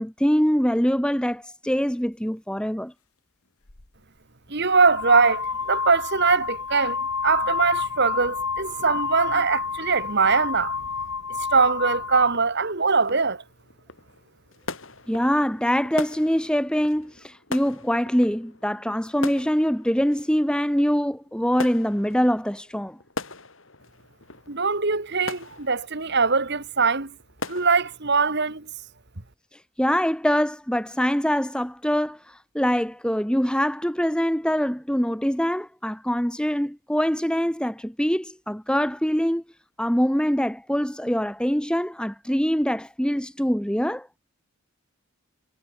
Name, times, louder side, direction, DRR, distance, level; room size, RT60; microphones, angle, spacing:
voice 1, 0.0-2.9 15.1-23.0 29.5-39.4 39.8-44.1, equal, 5° left, 1.5 m, -24 dB
sound 1, 3.7-3.9 4.7-12.4, left 5 dB, 85° left, 2.4 m, -30 dB
voice 2, 4.5-10.7 11.5-13.4 24.5-27.1 27.5-28.7, right 4 dB, 50° right, 1.9 m, -22 dB
sound 2, 11.3-28.0, left 3 dB, 60° left, 4.4 m, -41 dB
head